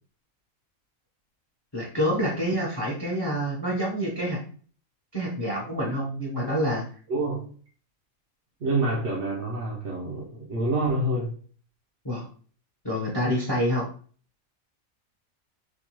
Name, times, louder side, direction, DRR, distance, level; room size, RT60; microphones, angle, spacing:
voice 1, 1.7-4.4 5.1-6.9 12.0-12.3 12.8-13.9, equal, 20° left, -2 dB, 0.7 m, -27 dB
voice 2, 7.1-7.5 8.6-11.4, right 2 dB, 60° right, -4 dB, 1.1 m, -27 dB
4.5 x 2.3 x 2.9 m, 0.44 s
omnidirectional pair, 1.5 m